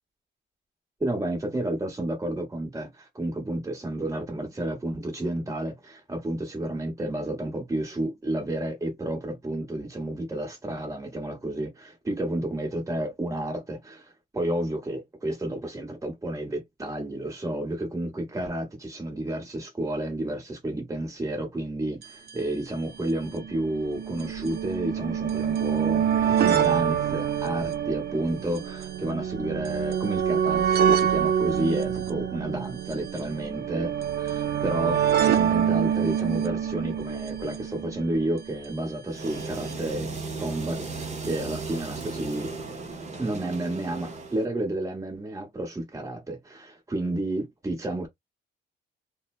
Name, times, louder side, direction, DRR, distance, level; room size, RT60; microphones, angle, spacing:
voice 1, 1.0-42.5 43.2-48.1, right 1 dB, 15° right, 1.3 m, -31 dB
sound 1, 22.0-22.1 22.3-22.4 23.2-38.5 39.5-39.6 39.7-39.8, right 9 dB, 55° right, 0.5 m, -26 dB
sound 2, 39.1-44.4, right 3 dB, 35° right, 0.9 m, -35 dB
2.7 x 2.1 x 2.4 m
cardioid pair, 90°, 20 cm